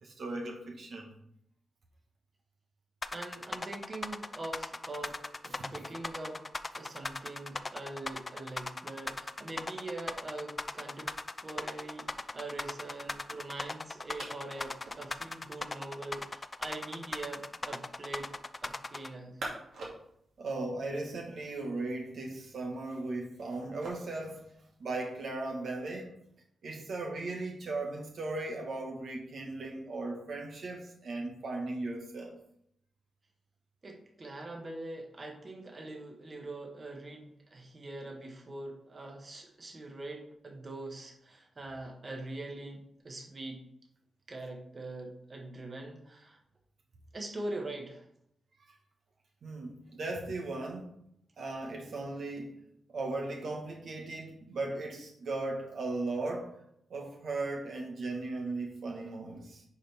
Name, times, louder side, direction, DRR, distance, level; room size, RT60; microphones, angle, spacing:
voice 1, 0.0-1.1 5.6-5.7 20.4-24.5 24.8-26.1 26.6-32.4 49.4-50.9 51.4-56.5 56.9-59.6, right 2 dB, 70° right, 0 dB, 1.4 m, -37 dB
sound 1, 3.0-19.1, left 3 dB, 25° left, 0.4 m, -38 dB
voice 2, 3.1-6.4 6.7-11.1 11.4-12.1 12.3-18.3 18.6-19.4 33.8-43.6 44.3-46.4 47.1-48.0, right 2 dB, 35° right, 1 dB, 1.6 m, -43 dB
sound 2, 10.5-26.0, right 2 dB, 90° right, 2.3 m, -52 dB
10.0 x 4.8 x 3.5 m, 0.73 s
cardioid pair, 100°, 0 cm